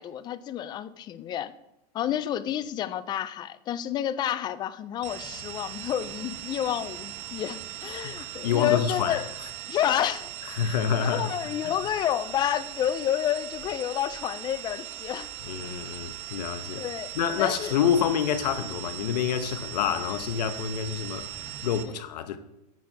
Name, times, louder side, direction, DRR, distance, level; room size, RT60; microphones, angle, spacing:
voice 1, 0.0-1.5 1.9-9.3 9.7-10.3 10.6-15.3 16.8-17.1 17.4-17.7, left 11 dB, 20° left, 0.3 m, -30 dB
sound 1, 5.0-21.8, right 12 dB, 35° right, 0.9 m, -39 dB
voice 2, 8.0-9.2 10.5-11.4 11.6-11.7 15.4-16.8 17.1-22.4, left 8 dB, 80° left, 0.9 m, -27 dB
9.4 x 4.6 x 4.6 m
supercardioid pair, 135°, 21 cm